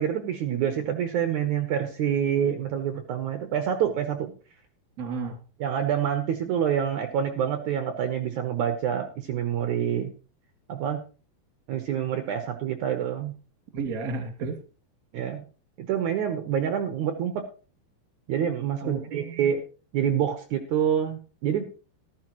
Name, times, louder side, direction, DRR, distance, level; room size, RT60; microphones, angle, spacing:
voice 1, 0.0-4.3 5.6-10.1 10.7-11.0 11.7-13.3 15.1-15.4 15.8-17.4 18.3-19.6 19.9-21.7, right 9 dB, 80° right, 6 dB, 1.7 m, -27 dB
voice 2, 5.0-5.4 13.7-14.6 18.8-19.5, right 4 dB, 30° right, 5 dB, 1.8 m, -32 dB
13.5 x 13.0 x 3.0 m, 0.36 s
omnidirectional pair, 5.0 m